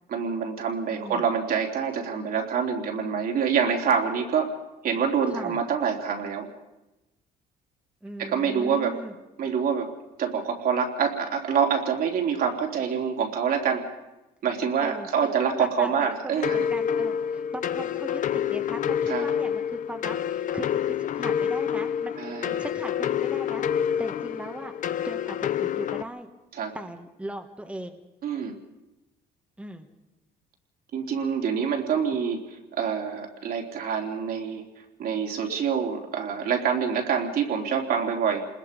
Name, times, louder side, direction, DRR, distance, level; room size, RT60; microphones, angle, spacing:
voice 1, 0.1-4.6 4.8-6.5 8.2-9.0 9.4-9.9 10.2-13.9 14.4-16.7 19.1-19.3 22.2-22.6 26.5-26.8 28.2-28.6 30.9-32.4 32.7-34.6 35.0-38.5, right 7 dB, 60° right, 1 dB, 3.5 m, -26 dB
voice 2, 0.9-1.2 5.3-5.6 8.0-9.1 14.8-22.1 22.6-23.6 24.0-24.7 25.0-26.3 26.7-28.0 29.6-29.9, right 1 dB, 5° right, 4 dB, 1.6 m, -39 dB
sound 1, 16.4-26.0, left 9 dB, 50° left, 0.9 m, -28 dB
27.5 x 20.5 x 5.3 m, 0.99 s
cardioid pair, 110°, 17 cm